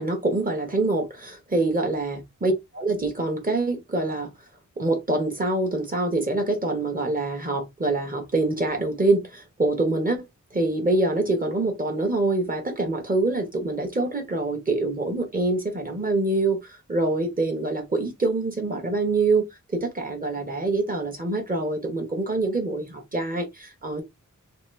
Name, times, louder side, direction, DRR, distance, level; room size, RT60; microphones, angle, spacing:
voice 1, 0.0-4.3 4.8-24.0, right 2 dB, 25° right, 1.1 m, -25 dB
3.0 x 2.4 x 3.2 m
wide cardioid pair, 120°, 31 cm